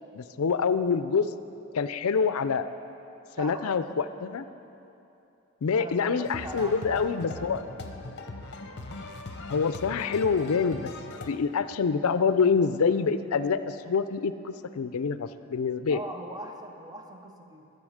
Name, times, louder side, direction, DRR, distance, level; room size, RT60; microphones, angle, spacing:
voice 1, 0.1-1.3 1.7-2.6 3.4-4.4 5.6-7.6 9.5-10.9 11.3-16.0, left 5 dB, 75° left, 12 dB, 0.4 m, -26 dB
voice 2, 3.4-3.9 5.8-7.6 15.9-17.7, right 1 dB, 15° right, 4 dB, 0.7 m, -41 dB
sound 1, 6.2-11.3, left 3 dB, 50° left, 0.8 m, -40 dB
12.0 x 7.8 x 6.4 m, 2.9 s
head